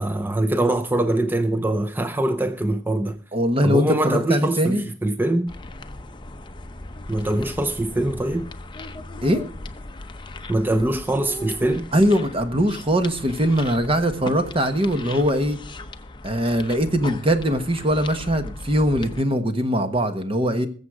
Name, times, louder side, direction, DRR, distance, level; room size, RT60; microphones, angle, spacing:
voice 1, 0.0-3.2 3.6-5.5 7.1-8.5 10.5-11.9, right 1 dB, 10° right, 0.6 m, -23 dB
voice 2, 3.3-4.8 9.2-9.4 11.9-15.6 16.2-20.7, equal, 30° right, 1.3 m, -21 dB
sound 1, 5.5-19.2, left 2 dB, 25° left, 0.7 m, -38 dB
21.0 x 7.4 x 4.8 m
head